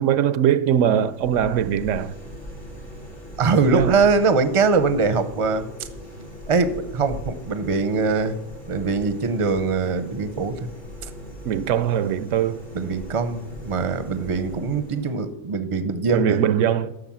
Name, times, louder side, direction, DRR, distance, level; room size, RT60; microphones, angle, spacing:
voice 1, 0.0-2.1 3.7-4.0 11.4-12.6 16.1-16.9, right 9 dB, 80° right, 0.9 m, -21 dB
sound 1, 0.7-15.3, equal, 90° left, 2.6 m, -40 dB
voice 2, 3.4-5.7 6.5-8.4 8.7-10.7 11.0-11.1 12.7-16.4, right 4 dB, 35° right, 0.7 m, -22 dB
11.5 x 6.4 x 7.4 m
omnidirectional pair, 1.3 m